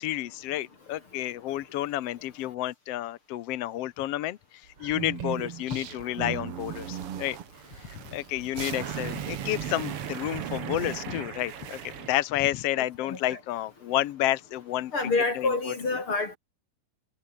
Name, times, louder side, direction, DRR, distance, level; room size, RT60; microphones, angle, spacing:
voice 1, 0.0-7.4 7.8-14.9 15.3-15.5, left 14 dB, 70° left, 1.6 m, -30 dB
sound 1, 4.8-12.2, right 9 dB, 50° right, 2.2 m, -37 dB
voice 2, 12.8-13.4 14.9-16.4, left 3 dB, 40° left, 3.6 m, -28 dB
omnidirectional pair, 3.7 m